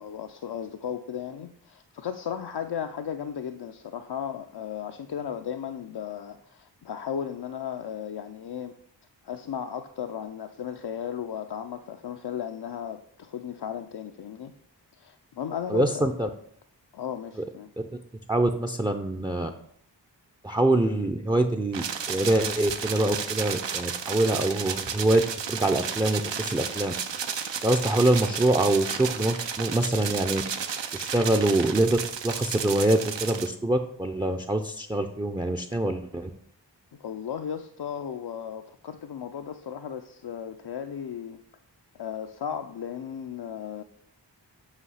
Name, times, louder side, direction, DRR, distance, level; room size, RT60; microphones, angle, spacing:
voice 1, 0.0-8.8 9.2-14.5 14.9-16.1 16.9-17.7 37.0-41.4 41.9-43.8, left 8 dB, 65° left, 6 dB, 0.5 m, -35 dB
voice 2, 15.7-16.3 18.3-19.5 20.4-25.2 25.5-26.9 27.6-30.4 30.9-32.0 32.2-36.3, right 2 dB, 10° right, 7 dB, 0.5 m, -24 dB
sound 1, 21.7-33.5, right 7 dB, 75° right, 0.6 m, -33 dB
8.1 x 2.8 x 5.5 m, 0.67 s
wide cardioid pair, 45°, 44 cm